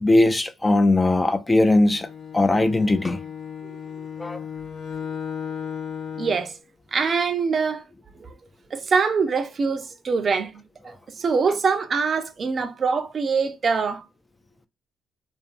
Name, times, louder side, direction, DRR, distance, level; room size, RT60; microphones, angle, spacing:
voice 1, 0.0-2.1 2.3-3.2 4.2-4.4, left 2 dB, 20° left, 0.4 m, -19 dB
Bowed string instrument, 1.8-6.6, left 7 dB, 65° left, 0.6 m, -35 dB
voice 2, 6.2-6.5 6.9-7.8 8.2-8.3 8.7-14.1, right 5 dB, 50° right, 0.5 m, -24 dB
2.5 x 2.5 x 2.3 m
hypercardioid pair, 50°, 0 cm